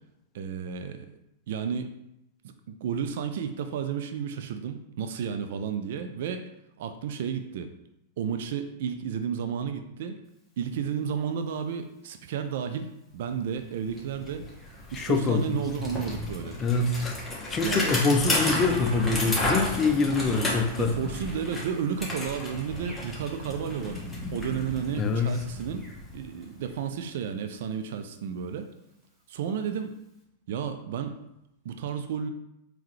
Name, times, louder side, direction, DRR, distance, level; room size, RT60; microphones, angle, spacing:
voice 1, 0.3-1.0 1.5-1.9 2.4-6.4 6.8-7.7 8.2-10.2 10.6-14.5 14.9-16.6 17.6-18.0 20.8-24.0 24.3-25.9 26.1-28.7 29.3-30.0 30.5-31.2 31.6-32.3, right 7 dB, 65° right, 7 dB, 0.3 m, -32 dB
Bicycle, 13.5-13.6 13.8-26.7, left 1 dB, 10° left, 1.2 m, -33 dB
voice 2, 14.9-15.6 16.6-17.2 17.5-20.9 25.0-25.4, left 4 dB, 25° left, 5 dB, 0.5 m, -25 dB
3.7 x 3.0 x 3.1 m, 0.84 s
hypercardioid pair, 100°, 0 cm